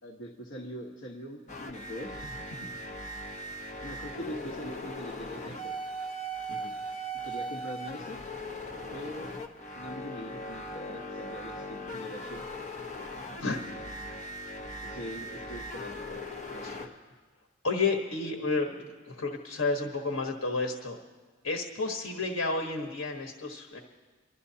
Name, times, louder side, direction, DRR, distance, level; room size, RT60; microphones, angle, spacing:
voice 1, 0.0-2.3 3.8-5.8 7.2-8.2 8.9-9.3 9.7-12.8 14.8-17.2, equal, 70° left, -4 dB, 1.2 m, -43 dB
sound 1, 1.5-16.9, equal, 40° left, 1.1 m, -39 dB
voice 2, 17.6-21.0 21.4-23.8, left 3 dB, 90° left, 2 dB, 1.2 m, -31 dB
29.5 x 12.5 x 2.8 m, 1.4 s
head